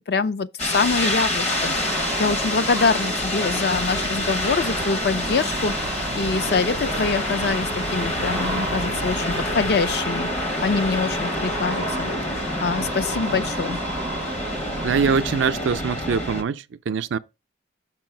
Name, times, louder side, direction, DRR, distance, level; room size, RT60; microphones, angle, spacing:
voice 1, 0.1-13.8, left 4 dB, 55° left, 0.4 m, -25 dB
sound 1, 0.6-16.4, left 1 dB, 35° left, 0.8 m, -27 dB
sound 2, 1.5-14.9, right 4 dB, 25° right, 0.4 m, -35 dB
sound 3, 3.7-9.8, equal, 75° left, 4.9 m, -37 dB
voice 2, 14.8-17.2, right 6 dB, 85° right, 0.4 m, -23 dB
6.1 x 4.7 x 4.5 m
head